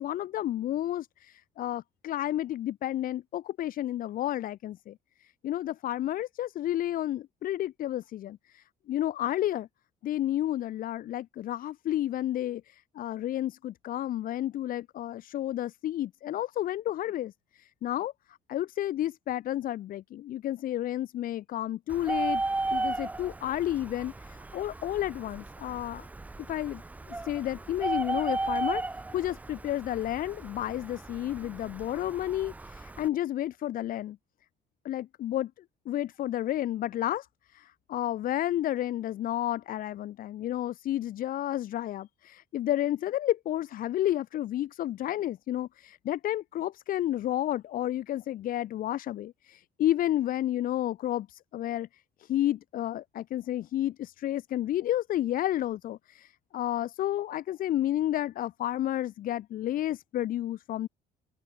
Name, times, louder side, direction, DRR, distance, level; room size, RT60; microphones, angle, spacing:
voice 1, 0.0-4.9 5.2-9.7 10.0-18.1 18.5-22.4 22.7-26.0 26.5-26.8 27.1-28.8 29.1-34.2 34.8-35.5 35.9-37.3 37.5-51.9 52.2-60.9, left 13 dB, 55° left, 0.6 m, -31 dB
Bird, 21.9-33.1, right 2 dB, 10° right, 0.3 m, -35 dB
open air
cardioid pair, 110°, 17 cm